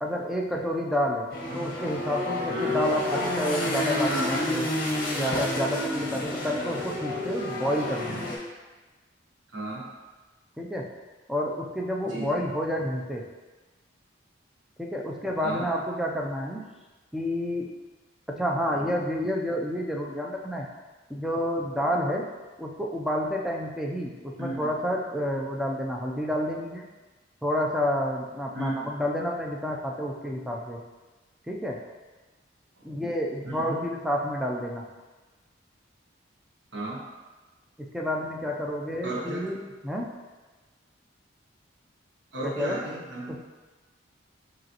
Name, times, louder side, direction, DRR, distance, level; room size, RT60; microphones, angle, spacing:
voice 1, 0.0-1.3 1.5-4.7 5.1-8.2 10.6-10.9 11.3-13.2 14.8-16.6 17.1-17.7 18.3-20.7 21.1-22.3 22.6-26.8 27.4-30.8 31.5-31.8 32.8-34.9 37.8-39.6 39.8-40.1 42.4-42.8 43.3-43.4, equal, ahead, -1 dB, 0.4 m, -29 dB
sound 1, 1.3-8.4, left 1 dB, 50° left, 0.8 m, -29 dB
voice 2, 2.5-2.8 9.5-9.8 12.0-12.3 15.4-15.6 24.4-24.6 28.5-28.9 32.8-32.9 33.4-33.9 36.7-37.0 39.0-39.5 42.3-43.4, right 2 dB, 65° right, -4 dB, 1.0 m, -34 dB
5.2 x 3.0 x 2.9 m, 1.3 s
head